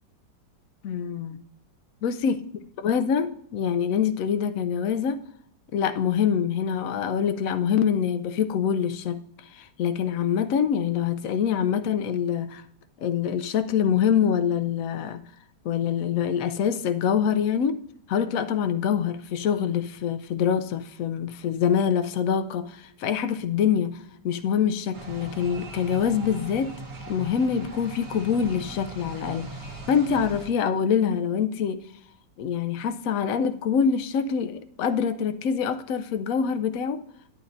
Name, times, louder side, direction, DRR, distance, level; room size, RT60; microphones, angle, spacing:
voice 1, 0.8-1.4 2.0-2.4 2.8-5.2 5.7-9.2 9.5-12.6 13.0-15.2 15.6-17.8 18.1-26.7 27.1-31.8 32.4-37.0, left 7 dB, 70° left, 0.8 m, -25 dB
sound 1, 24.9-30.5, right 2 dB, 65° right, 2.1 m, -39 dB
12.0 x 8.4 x 2.6 m
omnidirectional pair, 1.9 m